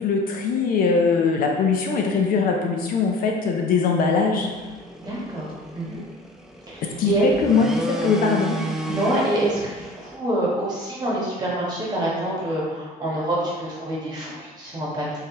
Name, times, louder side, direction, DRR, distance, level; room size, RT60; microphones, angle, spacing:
voice 1, 0.0-4.5 7.0-8.6, left 5 dB, 55° left, 2 dB, 0.5 m, -21 dB
sound 1, 4.5-10.2, right 2 dB, 5° right, 0.3 m, -33 dB
voice 2, 5.0-6.0 6.7-7.2 8.8-15.2, right 1 dB, 25° right, -6 dB, 1.4 m, -26 dB
3.3 x 3.2 x 3.0 m, 1.3 s
cardioid pair, 110°, 17 cm